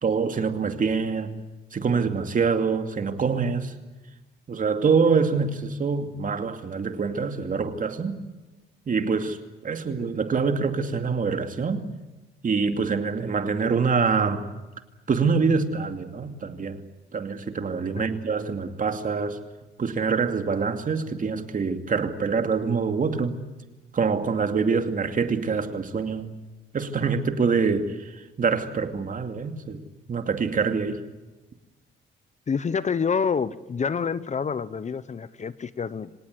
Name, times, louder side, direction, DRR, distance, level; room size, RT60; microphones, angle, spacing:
voice 1, 0.0-1.4 1.7-3.8 4.5-8.2 8.9-9.4 9.6-11.9 12.4-14.5 15.1-16.8 17.1-19.4 19.8-23.4 23.9-26.3 26.7-29.8 30.1-31.0, right 5 dB, 40° right, 2.5 m, -25 dB
voice 2, 32.5-36.1, left 6 dB, 35° left, 0.9 m, -27 dB
26.0 x 19.0 x 9.7 m
cardioid pair, 90°, 20 cm